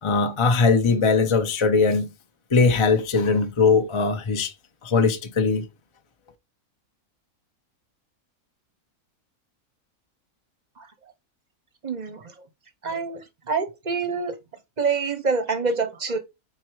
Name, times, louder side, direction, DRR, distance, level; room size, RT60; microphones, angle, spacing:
voice 1, 0.0-2.1 2.5-4.5 4.8-5.7, left 4 dB, 35° left, 0.5 m, -20 dB
voice 2, 11.8-12.2 12.8-13.2 13.5-14.4 14.8-16.2, right 4 dB, 35° right, 0.8 m, -26 dB
4.7 x 4.4 x 4.6 m
omnidirectional pair, 1.5 m